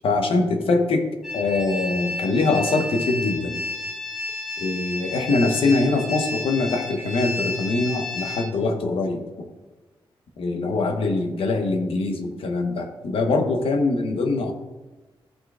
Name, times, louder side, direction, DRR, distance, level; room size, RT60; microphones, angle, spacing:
voice 1, 0.0-1.1 1.3-3.6 4.6-9.5 10.4-14.5, left 3 dB, 75° left, 5 dB, 1.0 m, -23 dB
sound 1, 1.2-8.5, left 3 dB, ahead, 1.8 m, -31 dB
14.0 x 6.3 x 2.4 m, 1.2 s
wide cardioid pair, 155°, 9 cm